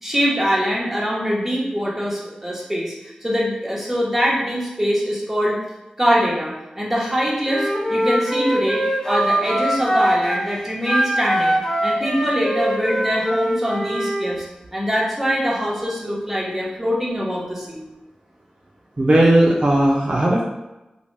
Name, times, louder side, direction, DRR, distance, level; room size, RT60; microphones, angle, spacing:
voice 1, 0.0-2.9 3.2-5.6 6.0-14.4 14.7-17.8, equal, 10° right, -5 dB, 0.9 m, -23 dB
Wind instrument woodwind instrument, 7.5-10.5 10.8-14.3, equal, 20° left, 0.6 m, -22 dB
voice 2, 19.0-20.4, right 1 dB, 45° right, -4 dB, 0.4 m, -16 dB
2.7 x 2.1 x 3.1 m, 1.0 s
cardioid pair, 45°, 3 cm